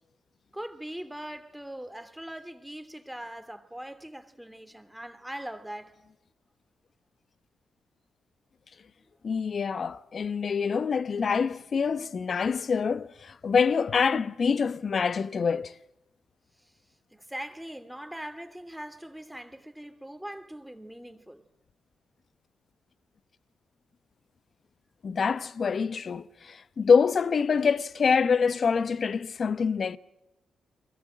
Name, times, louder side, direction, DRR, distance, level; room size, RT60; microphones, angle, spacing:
voice 1, 0.5-6.0 16.6-16.7 17.1-21.4, right 1 dB, 5° right, 3.0 m, -41 dB
voice 2, 9.2-15.7 25.0-30.0, left 5 dB, 55° left, 1.0 m, -25 dB
29.0 x 23.0 x 7.6 m
hypercardioid pair, 40°, 0 cm